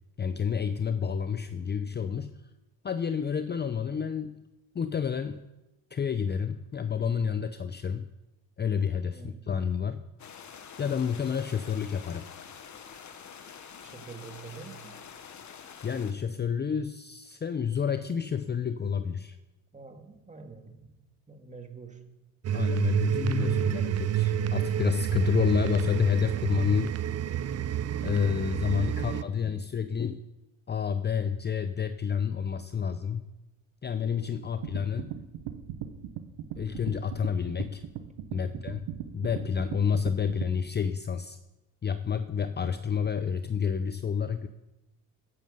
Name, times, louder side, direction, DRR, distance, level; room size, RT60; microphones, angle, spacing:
voice 1, 0.2-2.3 2.8-4.4 4.7-5.5 5.9-8.0 8.6-10.1 10.8-12.3 15.8-19.4 22.5-27.0 28.0-30.2 30.7-33.3 33.8-35.1 36.6-37.8 38.3-38.9 39.1-41.4 41.8-44.5, left 7 dB, 25° left, 10 dB, 0.6 m, -29 dB
voice 2, 9.1-9.5 13.8-15.0 19.7-21.0 21.3-22.1 38.4-38.8, right 5 dB, 20° right, 5 dB, 2.0 m, -46 dB
sound 1, 10.2-16.1, left 7 dB, 45° left, 1.5 m, -47 dB
sound 2, 22.4-29.2, right 10 dB, 40° right, 0.7 m, -29 dB
sound 3, 34.6-40.5, right 10 dB, 75° right, 1.4 m, -38 dB
14.5 x 9.2 x 5.5 m, 0.98 s
supercardioid pair, 80°, 40 cm